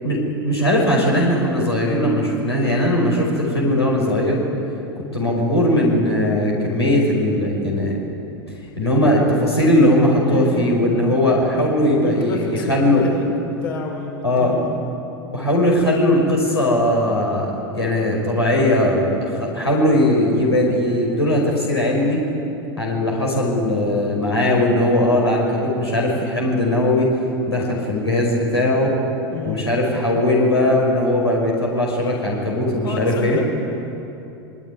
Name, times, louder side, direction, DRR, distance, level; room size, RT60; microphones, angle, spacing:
voice 1, 0.0-4.4 5.1-8.0 8.8-13.1 14.2-14.5 15.3-22.2 22.8-27.1 27.5-28.9 29.4-33.4, left 1 dB, 90° left, -2 dB, 5.5 m, -19 dB
voice 2, 10.2-11.0 12.0-13.3 13.6-14.7 29.3-29.6 32.8-33.6, left 5 dB, 65° left, 1 dB, 6.2 m, -30 dB
25.0 x 23.0 x 9.6 m, 2.9 s
figure-of-eight pair, 90°, 13 cm